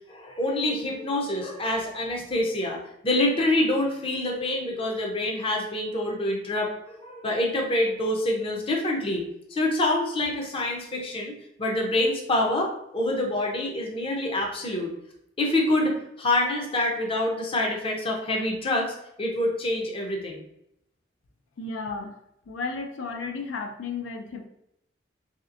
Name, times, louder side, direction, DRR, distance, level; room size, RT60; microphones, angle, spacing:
voice 1, 0.1-9.2 9.5-14.9 15.4-20.4, left 1 dB, 30° left, 0 dB, 0.5 m, -26 dB
voice 2, 21.6-22.2 22.5-24.5, left 4 dB, 85° left, 5 dB, 0.4 m, -33 dB
3.2 x 2.8 x 2.5 m, 0.79 s
head